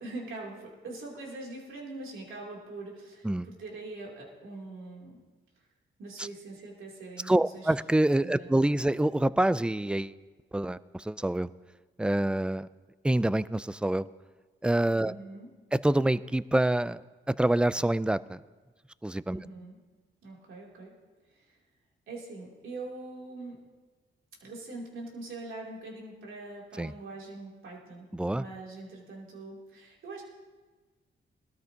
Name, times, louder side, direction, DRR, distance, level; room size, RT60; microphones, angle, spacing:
voice 1, 0.0-5.2 5.6-5.7 6.0-7.7 8.2-8.6 14.9-15.5 19.3-19.8 20.2-21.0 21.3-21.6 22.1-23.6 24.4-30.2, right 2 dB, 80° right, -2 dB, 2.9 m, -43 dB
voice 2, 7.3-10.1 10.5-11.5 12.0-12.7 13.0-14.0 14.6-15.1 15.7-17.0 17.3-18.4 19.0-19.4 26.8-26.9 28.1-28.4, right 1 dB, 5° right, 17 dB, 0.3 m, -26 dB
20.0 x 13.0 x 2.8 m, 1.3 s
cardioid pair, 75°, 20 cm